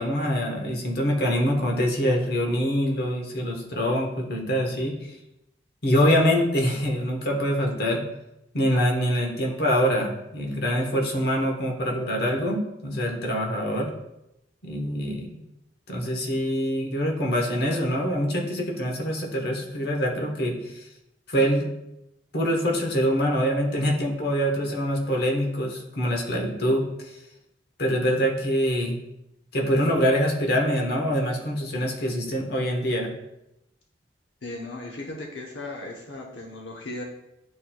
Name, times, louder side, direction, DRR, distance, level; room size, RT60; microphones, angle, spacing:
voice 1, 0.0-5.2 5.8-8.0 8.5-13.9 14.6-15.4 15.9-20.8 21.3-21.7 22.3-27.2 27.8-29.0 29.5-33.1, equal, 60° left, 0 dB, 1.2 m, -25 dB
voice 2, 34.4-37.0, left 2 dB, 90° left, -1 dB, 0.9 m, -36 dB
10.5 x 4.4 x 2.3 m, 0.88 s
head